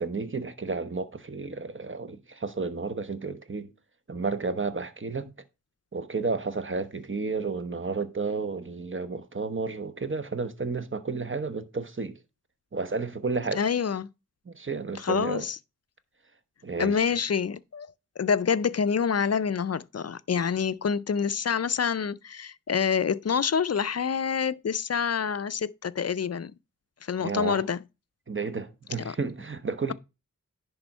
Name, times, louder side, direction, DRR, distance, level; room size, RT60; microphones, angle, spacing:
voice 1, 0.0-3.7 4.1-5.3 5.9-12.2 12.7-13.6 14.5-15.5 16.6-17.2 27.2-27.6 28.3-29.9, right 4 dB, 35° right, 1.0 m, -32 dB
voice 2, 13.5-14.1 15.0-15.6 16.8-17.9 18.2-26.5 27.0-27.8 29.0-29.1, left 6 dB, 50° left, 0.5 m, -27 dB
10.5 x 3.5 x 5.4 m
wide cardioid pair, 65°, 34 cm